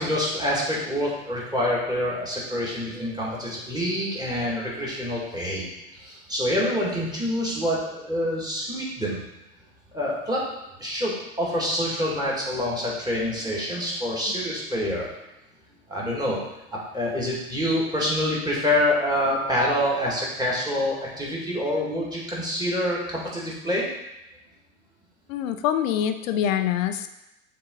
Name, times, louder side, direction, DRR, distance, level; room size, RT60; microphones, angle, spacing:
voice 1, 0.0-9.2 9.9-10.5 10.8-15.0 15.9-16.4 16.7-23.9, left 1 dB, 10° right, -5 dB, 2.1 m, -26 dB
voice 2, 25.3-27.1, left 9 dB, 60° left, 9 dB, 0.6 m, -25 dB
6.6 x 3.8 x 3.9 m, 0.91 s
hypercardioid pair, 85°, 44 cm